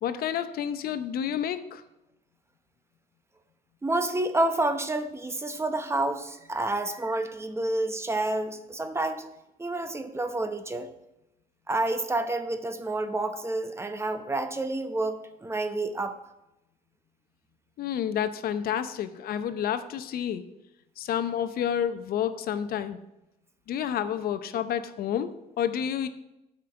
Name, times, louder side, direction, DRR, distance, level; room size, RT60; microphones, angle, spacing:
voice 1, 0.0-1.8 17.8-20.4 21.0-23.0 23.7-26.1, left 9 dB, 60° left, 11 dB, 0.7 m, -29 dB
voice 2, 3.8-9.3 9.6-10.9 11.7-16.2, right 2 dB, 15° right, 9 dB, 0.8 m, -29 dB
8.1 x 5.1 x 6.9 m, 0.89 s
cardioid pair, 110°, 17 cm